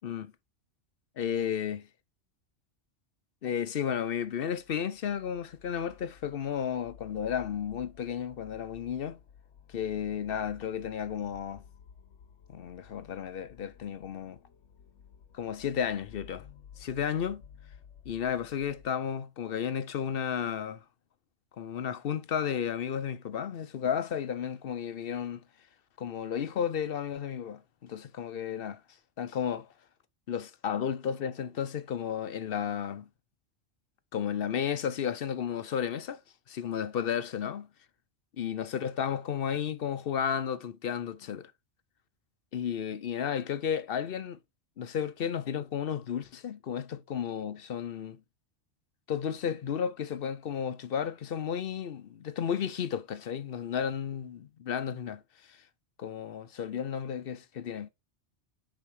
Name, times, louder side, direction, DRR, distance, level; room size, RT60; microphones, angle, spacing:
voice 1, 1.2-1.9 3.4-9.2 9.7-11.6 12.5-14.4 15.3-16.5 16.8-17.4 18.1-20.8 21.6-25.4 26.0-28.8 29.2-29.7 30.3-33.1 34.1-36.2 36.5-37.7 38.4-41.5 42.5-44.4 44.8-48.2 49.1-55.2 55.5-55.6 56.0-57.9, left 8 dB, 60° left, 0.8 m, -33 dB
sound 1, 4.6-18.9, left 8 dB, 80° left, 1.2 m, -54 dB
5.8 x 5.1 x 4.8 m
omnidirectional pair, 1.2 m